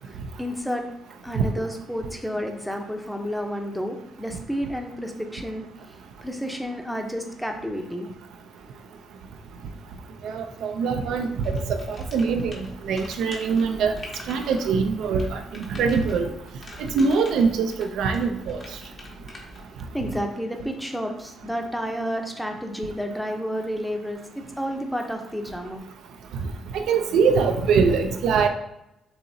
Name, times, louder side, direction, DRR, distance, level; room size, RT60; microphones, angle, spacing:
voice 1, 0.4-0.8 1.2-5.6 6.2-8.1 19.9-25.8, equal, ahead, 3 dB, 0.7 m, -30 dB
voice 2, 10.2-11.3 11.7-13.9 14.3-15.4 15.8-16.3 16.8-18.6 26.7-28.5, right 5 dB, 80° right, 5 dB, 0.4 m, -23 dB
sound 1, 11.4-19.6, left 2 dB, 40° left, 1.1 m, -44 dB
6.7 x 2.8 x 2.7 m, 0.85 s
cardioid pair, 90°, 0 cm